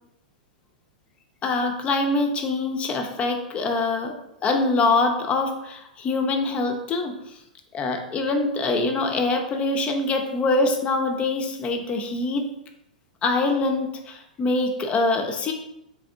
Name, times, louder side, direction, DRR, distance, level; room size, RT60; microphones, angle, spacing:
voice 1, 1.4-4.2 4.4-7.4 7.7-12.5 13.2-15.5, left 3 dB, 25° left, 4 dB, 0.6 m, -24 dB
3.4 x 3.4 x 2.5 m, 0.83 s
hypercardioid pair, 105°, 5 cm